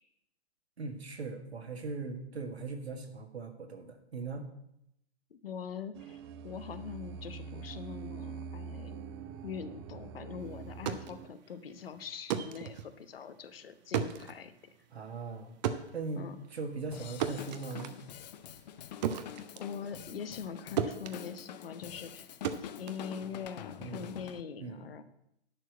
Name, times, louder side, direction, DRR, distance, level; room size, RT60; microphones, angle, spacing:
voice 1, 0.8-4.5 14.9-15.6 15.9-18.0 23.8-24.1 24.6-25.0, right 4 dB, 70° right, 6 dB, 1.7 m, -40 dB
voice 2, 5.3-9.0 9.4-14.5 16.1-16.4 19.6-22.3 22.6-25.0, left 7 dB, 60° left, 11 dB, 1.0 m, -43 dB
sound 1, 5.9-11.3, right 6 dB, 25° right, 0.5 m, -44 dB
sound 2, 10.6-20.5 20.8-23.7, right 8 dB, 40° right, 0.8 m, -38 dB
Drum kit / Drum, 16.9-24.4, left 9 dB, 40° left, 0.6 m, -46 dB
11.0 x 4.7 x 7.9 m, 0.79 s
figure-of-eight pair, 115°, 33 cm